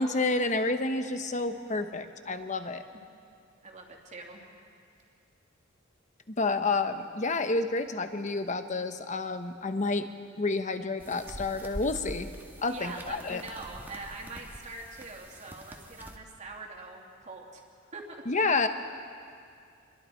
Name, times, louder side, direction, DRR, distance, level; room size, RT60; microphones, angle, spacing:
voice 1, 0.0-2.8 6.3-10.1 10.4-12.3 12.6-13.4 18.3-18.7, left 3 dB, 35° left, 8 dB, 1.0 m, -29 dB
voice 2, 3.6-4.4 12.7-17.6 17.9-18.2, right 3 dB, 35° right, 0 dB, 2.5 m, -43 dB
sound 1, 11.0-16.2, equal, 10° right, 1.4 m, -45 dB
26.5 x 22.0 x 4.6 m, 2.3 s
head